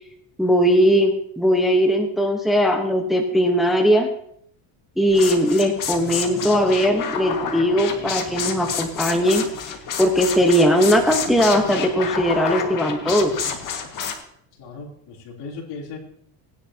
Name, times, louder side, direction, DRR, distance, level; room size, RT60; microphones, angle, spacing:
voice 1, 0.4-4.1 5.0-9.4 10.0-13.3, equal, ahead, 3 dB, 1.1 m, -19 dB
sound 1, 5.1-14.1, left 6 dB, 45° left, 1.9 m, -29 dB
voice 2, 14.6-16.0, left 4 dB, 60° left, -3 dB, 3.5 m, -36 dB
19.0 x 10.5 x 2.9 m, 0.68 s
cardioid pair, 125°, 46 cm